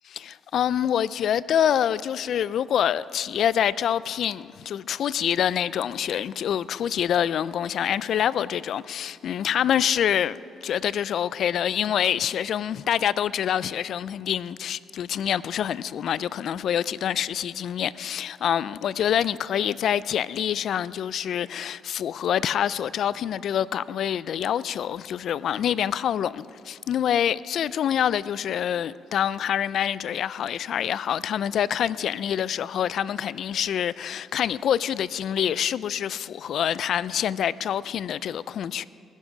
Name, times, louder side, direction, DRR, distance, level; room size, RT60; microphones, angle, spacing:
voice 1, 0.1-10.4 10.6-38.9, left 9 dB, 70° left, 0.3 m, -26 dB
20.0 x 11.0 x 4.9 m
cardioid pair, 90°, 0 cm